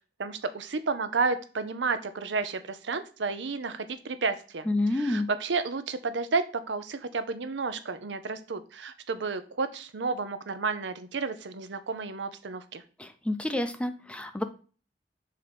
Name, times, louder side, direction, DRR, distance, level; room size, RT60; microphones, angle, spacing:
voice 1, 0.2-12.8, right 4 dB, 85° right, 11 dB, 0.7 m, -31 dB
voice 2, 4.7-5.3 13.0-14.4, left 1 dB, 5° left, 8 dB, 0.4 m, -29 dB
7.0 x 2.9 x 5.0 m, 0.38 s
head